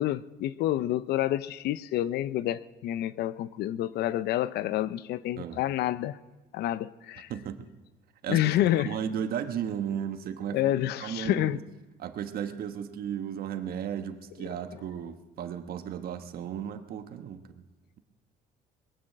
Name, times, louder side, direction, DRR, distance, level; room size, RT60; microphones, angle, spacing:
voice 1, 0.0-6.2 6.5-7.3 8.3-8.9 10.5-11.6, left 13 dB, 75° left, 17 dB, 0.6 m, -28 dB
voice 2, 7.3-7.7 8.2-10.6 11.0-11.6 12.0-17.6, right 9 dB, 65° right, 8 dB, 1.2 m, -35 dB
21.0 x 9.0 x 7.4 m, 1.2 s
cardioid pair, 110°, 17 cm